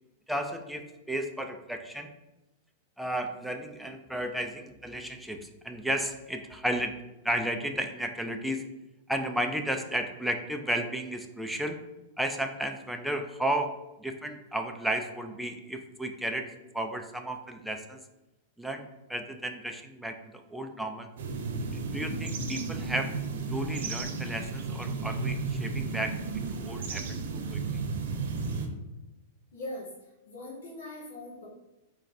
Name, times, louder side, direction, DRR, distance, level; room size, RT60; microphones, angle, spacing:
voice 1, 0.3-2.1 3.0-6.9 7.2-8.6 9.1-11.8 12.2-18.0 18.6-21.1 21.6-23.1 23.5-27.6, right 1 dB, ahead, 4 dB, 0.5 m, -33 dB
sound 1, 21.2-28.7, right 4 dB, 75° right, 0.8 m, -33 dB
voice 2, 29.5-29.9 30.3-31.5, left 1 dB, 75° left, -5 dB, 1.2 m, -40 dB
3.8 x 3.1 x 4.2 m, 1.0 s
hypercardioid pair, 130°, 0 cm